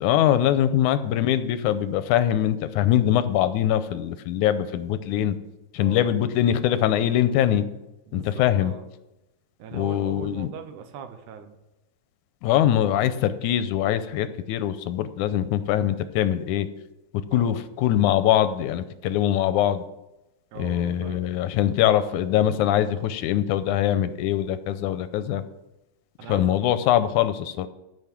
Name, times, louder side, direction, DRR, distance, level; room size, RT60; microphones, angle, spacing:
voice 1, 0.0-5.4 5.7-7.6 8.1-8.7 9.7-10.5 12.4-16.7 17.3-19.8 20.6-25.4 26.3-27.7, left 11 dB, 90° left, 12 dB, 2.1 m, -22 dB
voice 2, 8.1-8.9 9.6-11.6 17.3-17.6 20.5-21.3 26.2-26.6, right 7 dB, 80° right, 8 dB, 2.5 m, -40 dB
14.5 x 5.5 x 7.3 m, 0.95 s
omnidirectional pair, 3.5 m